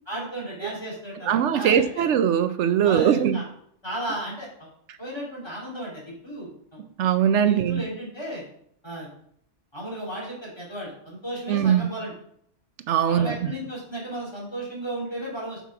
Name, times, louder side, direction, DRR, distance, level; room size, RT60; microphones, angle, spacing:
voice 1, 0.1-2.0 2.8-3.4 3.8-4.7 5.0-6.8 7.4-8.4 8.8-9.1 9.7-12.1 13.1-15.6, right 1 dB, 20° left, -5 dB, 2.9 m, -34 dB
voice 2, 1.3-3.4 7.0-7.8 11.5-11.9 12.9-13.4, right 9 dB, 75° right, 11 dB, 0.9 m, -21 dB
7.3 x 5.6 x 4.7 m, 0.70 s
omnidirectional pair, 1.3 m